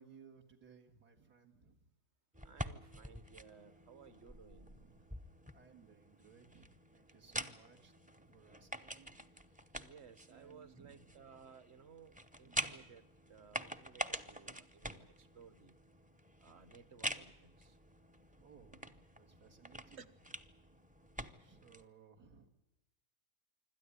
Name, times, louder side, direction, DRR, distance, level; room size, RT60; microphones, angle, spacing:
voice 1, 0.0-1.9 4.6-5.1 5.5-9.2 9.5-9.7 10.3-11.3 12.4-12.9 18.4-20.0 21.4-22.5, right 6 dB, 75° right, 0 dB, 2.4 m, -62 dB
sound 1, 2.3-21.9, right 1 dB, 10° right, 0.5 m, -47 dB
voice 2, 2.4-4.8 9.8-15.8 16.4-17.8 20.0-20.1, right 6 dB, 45° right, 15 dB, 1.4 m, -59 dB
26.5 x 13.0 x 9.8 m, 0.98 s
omnidirectional pair, 1.7 m